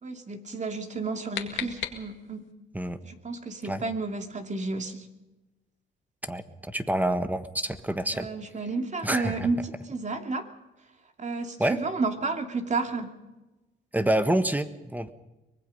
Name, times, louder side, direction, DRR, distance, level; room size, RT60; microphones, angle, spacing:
voice 1, 0.0-2.4 3.0-5.1 8.1-9.6 9.9-10.5 11.2-13.1, right 3 dB, 35° right, 5 dB, 2.4 m, -31 dB
sound 1, 0.8-2.5, left 9 dB, 75° left, 2.1 m, -37 dB
voice 2, 6.3-8.3 9.0-9.5 11.6-11.8 13.9-15.1, right 1 dB, 10° right, 10 dB, 1.4 m, -27 dB
24.0 x 19.5 x 5.5 m, 1.1 s
cardioid pair, 90°, 20 cm